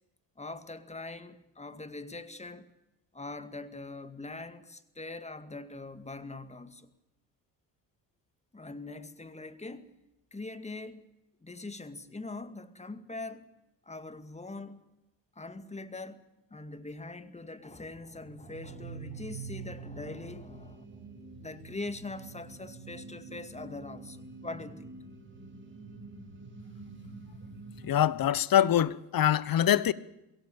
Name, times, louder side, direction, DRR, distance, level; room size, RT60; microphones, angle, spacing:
voice 1, 0.4-2.7 3.1-6.9 8.5-9.9 10.3-11.0 11.4-13.5 13.9-14.8 15.4-16.2 16.5-20.9 21.4-24.9, left 2 dB, 15° left, 2.2 m, -42 dB
sound 1, 18.0-27.9, right 4 dB, 25° right, 4.9 m, -46 dB
voice 2, 27.8-29.9, left 11 dB, 50° left, 1.2 m, -24 dB
22.5 x 17.5 x 8.8 m
hypercardioid pair, 60°, 46 cm